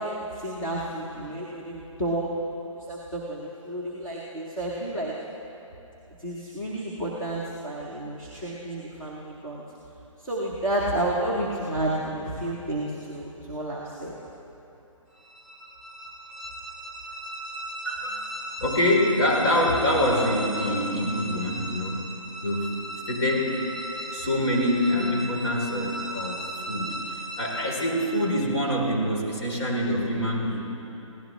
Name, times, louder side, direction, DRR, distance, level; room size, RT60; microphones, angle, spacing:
voice 1, 0.0-2.3 2.8-5.1 6.2-9.6 10.2-14.1, right 1 dB, 5° left, -7 dB, 0.7 m, -31 dB
sound 1, 15.2-28.5, right 1 dB, 35° left, 2.1 m, -37 dB
voice 2, 17.8-18.3 18.6-22.0 22.4-22.7 23.1-23.7 24.1-30.7, left 1 dB, 50° left, -2 dB, 3.3 m, -25 dB
24.0 x 16.5 x 3.0 m, 3.0 s
hypercardioid pair, 175°, 17 cm